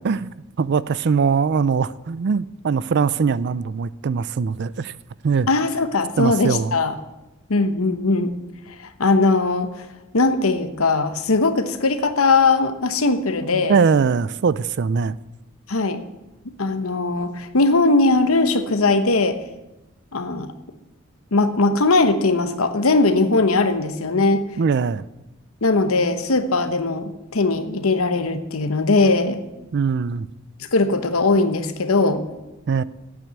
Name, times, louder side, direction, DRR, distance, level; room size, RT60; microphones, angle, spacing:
voice 1, 0.0-4.9 5.2-5.5 6.2-6.8 13.5-15.2 24.6-25.1 29.7-30.3 32.7-32.8, right 5 dB, 55° right, 0.4 m, -21 dB
voice 2, 5.5-6.9 7.5-8.3 8.8-9.7 10.1-13.8 15.7-16.0 16.6-19.4 20.1-20.5 21.3-24.4 25.6-29.4 30.7-32.3, left 3 dB, 80° left, 1.1 m, -19 dB
9.1 x 8.7 x 9.5 m
head